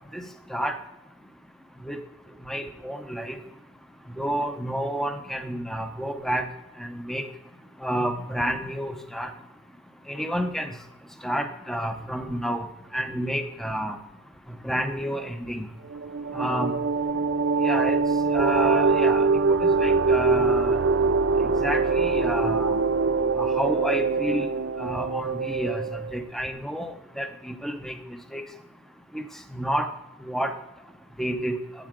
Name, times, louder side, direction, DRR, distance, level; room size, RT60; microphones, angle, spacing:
voice 1, 2.4-3.3 4.2-6.5 6.8-7.2 7.8-9.3 10.1-10.7 11.2-12.7 12.9-14.0 14.6-15.7 16.3-16.7 17.6-18.0 18.3-19.3 19.6-20.8 21.6-22.8 23.4-24.5 24.8-28.0 28.3-28.4 29.1-29.2 29.5-29.9 30.2-30.5 31.2-31.5, equal, ahead, 7 dB, 0.7 m, -29 dB
sound 1, 15.9-26.1, right 4 dB, 70° right, 0.5 m, -23 dB
12.0 x 9.2 x 3.7 m, 0.93 s
head